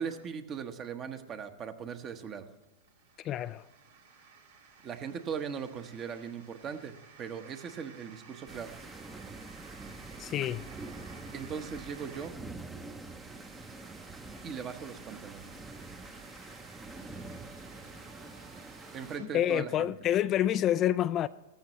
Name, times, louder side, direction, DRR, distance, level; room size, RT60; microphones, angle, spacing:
voice 1, 0.0-2.5 4.8-6.9 7.2-8.8 11.3-12.3 14.4-15.6 18.9-19.9, right 7 dB, 35° right, 1.1 m, -39 dB
sound 1, 2.5-19.3, right 5 dB, 75° right, 2.1 m, -55 dB
voice 2, 3.2-3.6 10.2-10.6 19.2-21.3, left 11 dB, 35° left, 0.3 m, -28 dB
sound 2, 8.5-19.2, right 3 dB, 10° right, 0.8 m, -46 dB
17.5 x 14.0 x 3.1 m
hypercardioid pair, 105°, 0 cm